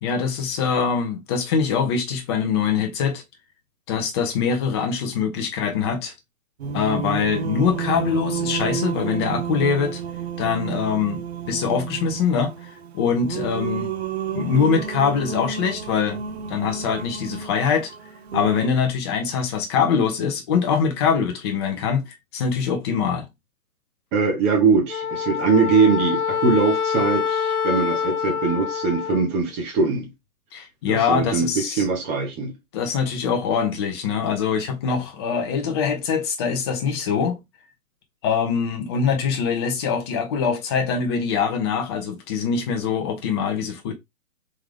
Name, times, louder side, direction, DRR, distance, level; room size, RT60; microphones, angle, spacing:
voice 1, 0.0-3.2 3.9-6.1 6.7-10.0 10.4-11.2 11.5-13.9 14.3-16.2 16.5-17.9 18.3-22.1 22.3-23.3 30.5-31.9 32.7-37.4 38.2-43.9, left 6 dB, 20° left, 0.7 m, -23 dB
Singing, 6.6-18.7, right 7 dB, 45° right, 0.7 m, -31 dB
voice 2, 24.1-30.1 30.9-32.5, right 4 dB, 20° right, 0.9 m, -21 dB
Wind instrument woodwind instrument, 24.9-29.3, left 7 dB, 90° left, 0.6 m, -25 dB
3.8 x 3.4 x 3.3 m
figure-of-eight pair, 135°, 43 cm